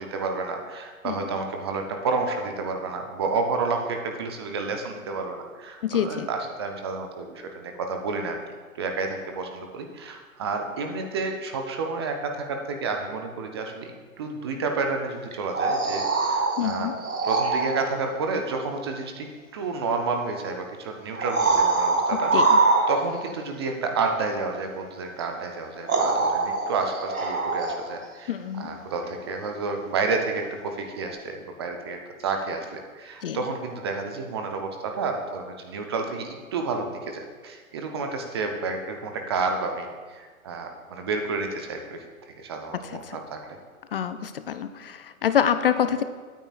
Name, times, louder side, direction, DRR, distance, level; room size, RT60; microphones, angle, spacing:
voice 1, 0.0-8.4 8.7-16.9 17.2-19.3 19.5-22.6 22.9-42.1 42.4-43.4, right 4 dB, 20° right, 4 dB, 0.4 m, -30 dB
voice 2, 5.8-6.3 16.6-16.9 22.3-22.6 28.3-28.8 33.2-33.4 43.0-43.2 43.9-46.0, left 9 dB, 45° left, 11 dB, 0.5 m, -26 dB
sound 1, 15.3-17.9 19.7-19.8 21.1-23.3 25.2-25.3 25.8-28.0 31.1-31.2, right 3 dB, 85° right, 2.4 m, -24 dB
16.5 x 9.1 x 2.4 m, 1.5 s
figure-of-eight pair, 125°, 42 cm